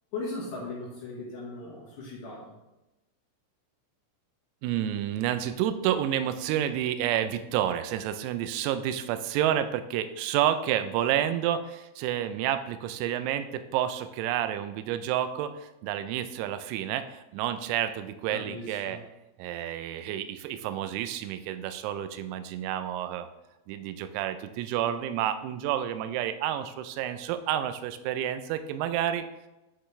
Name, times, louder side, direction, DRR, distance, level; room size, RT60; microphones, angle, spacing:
voice 1, 0.1-2.5 18.3-19.0, left 2 dB, 70° left, -5 dB, 2.9 m, -38 dB
voice 2, 4.6-19.0 19.4-23.3 23.7-29.2, right 11 dB, 90° right, 10 dB, 3.3 m, -30 dB
10.0 x 4.1 x 3.1 m, 0.98 s
omnidirectional pair, 6.0 m